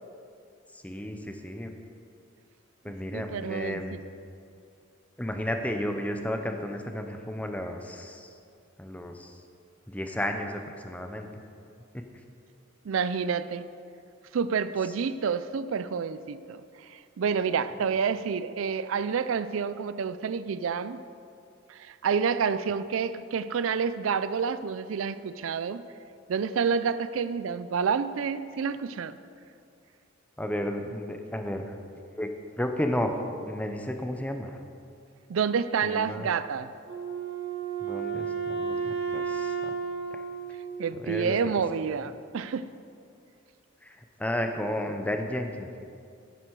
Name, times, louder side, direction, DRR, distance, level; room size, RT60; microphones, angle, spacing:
voice 1, 0.7-1.7 2.8-4.0 5.2-8.3 8.8-9.4 9.9-11.3 11.9-12.0 30.4-31.7 32.0-32.3 32.6-34.6 35.8-36.3 37.8-39.7 40.1-40.2 41.0-41.4 43.8-45.7, left 1 dB, 5° left, 5 dB, 0.7 m, -33 dB
voice 2, 3.1-4.0 12.8-13.7 14.3-16.6 16.9-21.0 21.7-25.8 26.3-29.2 35.3-36.7 40.8-42.7, right 6 dB, 80° right, 14 dB, 0.4 m, -29 dB
Wind instrument woodwind instrument, 36.9-41.4, right 6 dB, 55° right, 2.1 m, -33 dB
11.0 x 10.0 x 4.7 m, 2.4 s
head